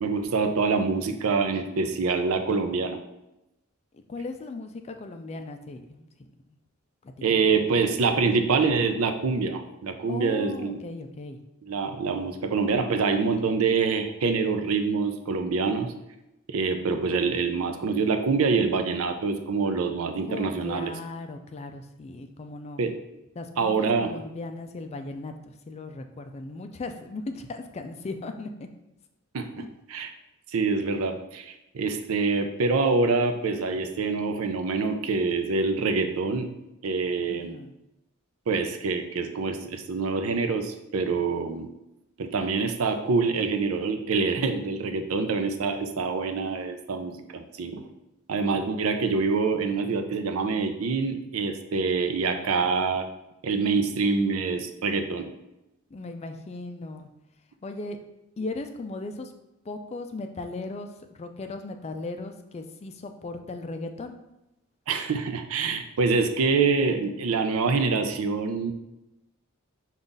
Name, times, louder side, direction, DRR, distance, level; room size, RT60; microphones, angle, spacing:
voice 1, 0.0-3.0 7.2-10.8 11.6-15.9 16.5-20.9 22.8-23.0 23.6-24.1 29.3-30.1 30.5-36.5 36.8-37.5 38.5-41.7 42.2-47.8 48.3-53.1 53.4-55.3 64.9-68.7, right 4 dB, 80° right, 7 dB, 0.5 m, -25 dB
voice 2, 3.9-6.1 7.0-7.4 7.7-8.0 10.1-11.4 20.1-22.8 23.4-28.7 29.6-29.7 37.3-37.7 55.9-57.1 57.6-58.0 58.4-59.3 59.7-64.2, left 2 dB, 30° left, 6 dB, 0.3 m, -37 dB
5.2 x 2.4 x 3.8 m, 0.92 s
head